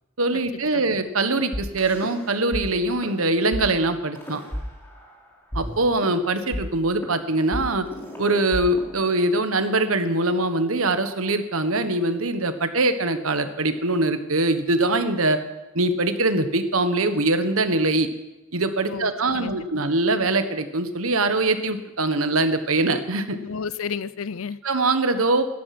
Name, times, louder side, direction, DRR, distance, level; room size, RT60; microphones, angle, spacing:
voice 1, 0.2-4.4 5.5-7.9 8.2-15.4 15.7-18.1 18.5-23.4 24.6-25.5, right 2 dB, 85° right, 9 dB, 1.4 m, -23 dB
sound 1, 1.5-2.6 2.9-3.1 3.5-3.6 4.1-5.2 5.5-9.5, equal, 10° left, 3.2 m, -33 dB
voice 2, 18.9-19.8 23.4-24.6, left 6 dB, 75° left, 17 dB, 0.6 m, -32 dB
17.0 x 12.0 x 6.1 m, 1.0 s
head